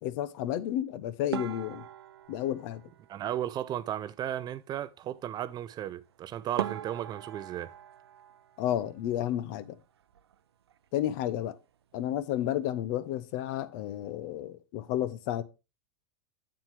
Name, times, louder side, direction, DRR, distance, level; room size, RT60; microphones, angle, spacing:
voice 1, 0.0-1.8 2.3-2.8 8.6-9.8 10.9-11.5 11.9-15.4, left 12 dB, 55° left, 0.9 m, -31 dB
sound 1, 1.3-3.8 6.0-6.1 6.6-9.3 9.6-10.4 10.7-10.9 11.2-11.3 11.9-12.2, right 10 dB, 80° right, 0.5 m, -41 dB
voice 2, 3.1-7.7, right 11 dB, 30° right, 0.5 m, -35 dB
7.5 x 7.1 x 3.4 m
hypercardioid pair, 100°, 13 cm